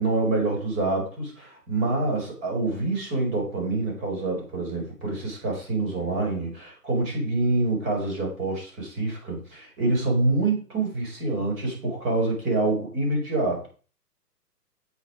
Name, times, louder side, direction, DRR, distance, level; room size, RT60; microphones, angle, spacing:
voice 1, 0.0-13.7, right 2 dB, 25° right, 0 dB, 5.4 m, -26 dB
9.0 x 7.8 x 5.0 m, 0.38 s
figure-of-eight pair, 130°, 49 cm